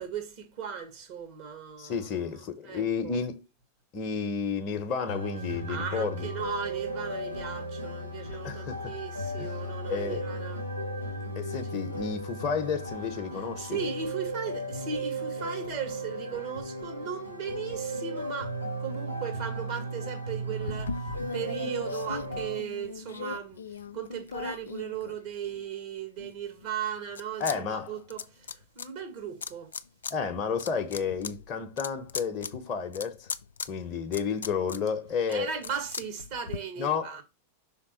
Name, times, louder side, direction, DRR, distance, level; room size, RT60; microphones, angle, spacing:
voice 1, 0.0-2.0 2.7-3.2 5.5-10.6 13.6-23.6 23.9-29.7 35.3-37.2, right 7 dB, 45° right, 1.8 m, -37 dB
voice 2, 1.8-3.4 3.9-6.3 8.4-8.9 9.4-9.5 9.9-10.2 11.3-13.8 27.4-27.9 30.1-33.3 33.7-35.5 36.8-37.1, left 6 dB, 30° left, 1.0 m, -31 dB
sound 1, 5.1-22.6, right 1 dB, 85° right, 1.0 m, -35 dB
sound 2, 20.6-25.7 26.2-27.6 27.8-28.9 29.4-30.1 30.5-36.6, left 5 dB, 70° left, 0.4 m, -39 dB
5.8 x 4.0 x 4.4 m
figure-of-eight pair, 90°, 0 cm